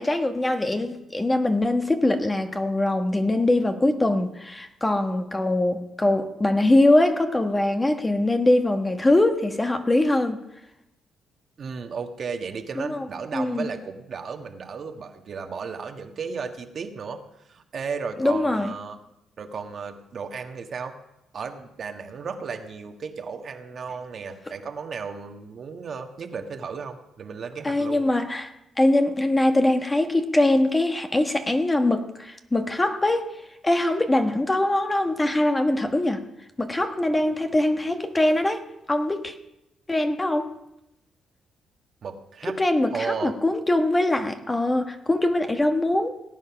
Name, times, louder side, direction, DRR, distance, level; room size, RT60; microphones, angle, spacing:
voice 1, 0.0-10.4 12.8-13.1 13.3-13.7 18.2-18.8 27.6-36.2 36.6-39.3 39.9-40.5 42.5-46.1, left 1 dB, 15° left, 1.2 m, -22 dB
voice 2, 11.6-17.2 17.5-19.0 19.4-21.0 21.3-28.0 42.0-42.6 42.9-43.4, right 5 dB, 50° right, 1.6 m, -34 dB
18.0 x 9.5 x 6.0 m
cardioid pair, 90°, 0 cm